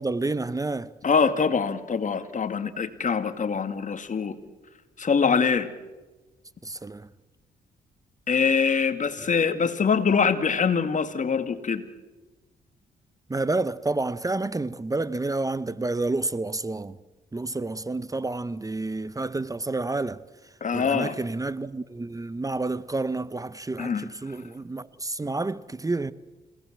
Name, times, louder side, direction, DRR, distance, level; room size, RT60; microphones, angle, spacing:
voice 1, 0.0-0.9 6.6-7.1 13.3-17.0 17.3-20.2 20.7-26.1, right 2 dB, 20° right, 0.9 m, -29 dB
voice 2, 1.0-4.4 5.0-5.7 8.3-11.8 20.6-21.1 23.8-24.1, left 5 dB, 50° left, 2.2 m, -24 dB
29.0 x 18.5 x 7.5 m
supercardioid pair, 60°, 17 cm